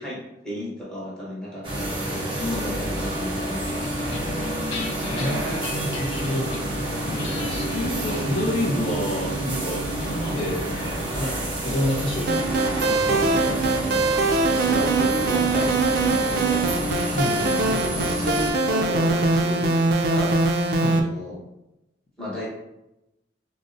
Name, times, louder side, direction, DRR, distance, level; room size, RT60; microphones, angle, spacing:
voice 1, 0.0-4.1 14.7-16.7 17.4-19.7 20.1-20.4 20.8-21.4 22.2-22.5, equal, 5° left, -7 dB, 1.0 m, -34 dB
sound 1, 1.6-18.5, right 1 dB, 30° right, 0.8 m, -29 dB
voice 2, 2.3-3.0 5.0-6.5 7.4-10.6 11.2-11.3 11.6-12.3 12.9-13.6 17.1-17.8 20.8-21.0, left 1 dB, 30° left, -6 dB, 0.5 m, -29 dB
sound 2, 3.7-14.3, equal, 90° left, 0.4 m, -36 dB
sound 3, 12.3-21.0, right 3 dB, 55° right, 0.3 m, -22 dB
3.7 x 2.0 x 2.5 m, 0.91 s
head